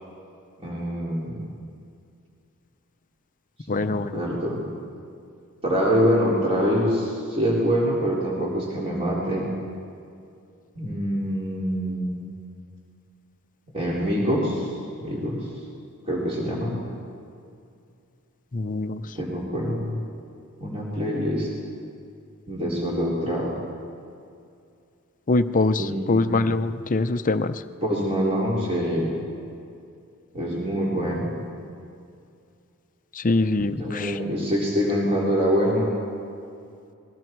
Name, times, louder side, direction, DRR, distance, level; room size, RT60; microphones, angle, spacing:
voice 1, 0.6-1.4 3.7-4.6 5.6-9.5 10.8-12.2 13.7-14.7 15.0-15.5 16.1-16.8 19.2-20.0 20.6-21.5 22.5-23.5 25.8-26.3 27.8-29.1 30.3-31.3 33.6-36.0, equal, 30° right, -5 dB, 4.0 m, -25 dB
voice 2, 3.7-4.2 18.5-19.1 25.3-27.6 33.1-34.2, left 2 dB, 40° left, 10 dB, 0.7 m, -24 dB
29.5 x 21.5 x 4.7 m, 2.4 s
head